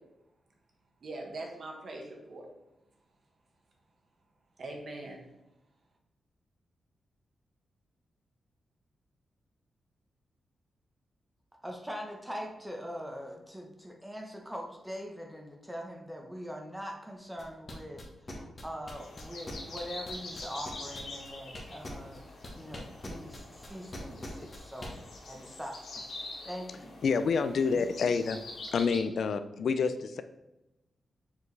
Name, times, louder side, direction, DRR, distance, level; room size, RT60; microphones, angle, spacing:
voice 1, 1.0-2.5 4.6-5.2, right 2 dB, 50° right, 1 dB, 1.3 m, -41 dB
voice 2, 11.6-26.9 28.1-28.4, equal, 5° right, 1 dB, 0.8 m, -43 dB
sound 1, 17.4-24.9, left 1 dB, 30° left, 1.2 m, -43 dB
sound 2, 18.9-29.0, left 2 dB, 85° left, 1.6 m, -45 dB
voice 3, 27.0-28.4 28.7-30.2, left 5 dB, 65° left, 11 dB, 0.4 m, -28 dB
7.0 x 4.4 x 3.3 m, 0.94 s
wide cardioid pair, 150°, 0 cm